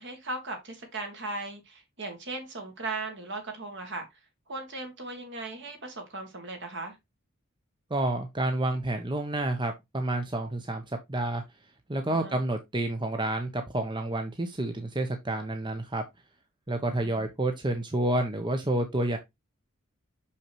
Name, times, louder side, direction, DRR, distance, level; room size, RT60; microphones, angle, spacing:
voice 1, 0.0-4.1 4.5-7.0 12.1-12.4 16.9-17.3, right 2 dB, 55° right, 2.4 m, -37 dB
voice 2, 7.9-11.4 11.9-16.0 16.7-19.2, right 1 dB, 20° right, 0.8 m, -29 dB
6.3 x 5.8 x 3.0 m
head